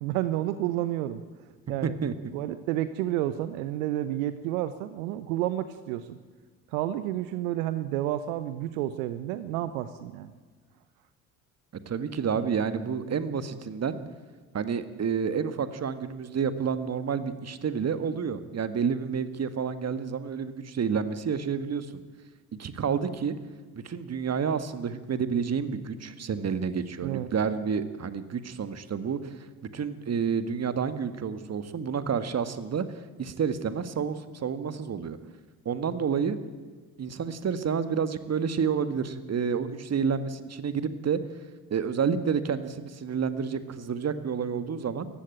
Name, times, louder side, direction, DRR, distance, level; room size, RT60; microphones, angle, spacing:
voice 1, 0.0-1.2 1.7-1.9 2.3-6.2 6.7-10.3 27.0-27.3, right 13 dB, 70° right, 13 dB, 1.0 m, -30 dB
voice 2, 1.8-2.1 11.9-14.0 14.5-21.9 22.6-23.3 23.7-29.5 29.7-32.9 33.2-35.2 35.7-36.4 37.0-41.2 41.7-45.1, right 6 dB, 35° right, 12 dB, 1.8 m, -29 dB
19.5 x 15.0 x 9.0 m, 1.5 s
figure-of-eight pair, 55°, 43 cm